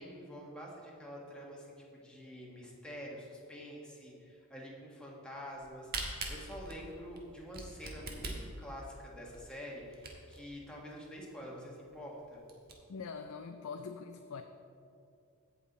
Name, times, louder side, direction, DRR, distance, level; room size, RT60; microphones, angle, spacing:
voice 1, 0.0-1.7 1.9-12.4, equal, 5° left, -4 dB, 1.6 m, -47 dB
Camera, 5.5-10.5 11.0-11.1 11.3-11.4 11.9-12.0 12.3-12.7, right 3 dB, 45° right, 1.3 m, -42 dB
voice 2, 12.9-14.4, left 5 dB, 75° left, 6 dB, 0.5 m, -43 dB
16.0 x 5.7 x 4.2 m, 2.5 s
head